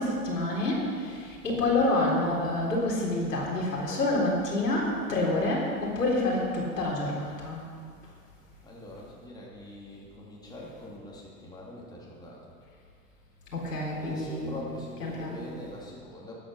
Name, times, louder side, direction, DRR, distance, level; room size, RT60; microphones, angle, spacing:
voice 1, 0.0-7.6 13.5-14.7 15.0-15.4, left 2 dB, 85° left, -3 dB, 3.8 m, -28 dB
voice 2, 8.6-12.6 14.0-16.3, left 1 dB, 10° left, -5 dB, 3.1 m, -43 dB
13.5 x 8.8 x 6.5 m, 2.1 s
hypercardioid pair, 105°, 47 cm